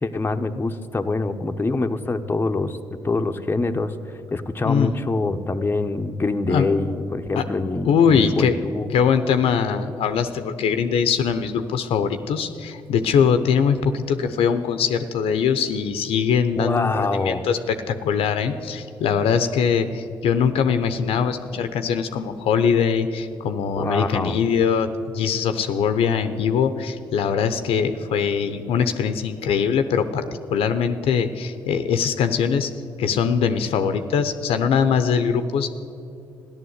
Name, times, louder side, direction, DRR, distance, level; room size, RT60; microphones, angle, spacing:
voice 1, 0.0-2.8 3.0-3.9 4.3-8.9 16.6-17.5 23.8-24.4, left 3 dB, 20° left, 5 dB, 1.0 m, -25 dB
voice 2, 7.8-8.6 8.9-30.2 30.5-32.7 33.0-35.7, left 7 dB, 70° left, 9 dB, 0.8 m, -22 dB
14.0 x 11.0 x 8.1 m, 2.6 s
supercardioid pair, 55°, 10 cm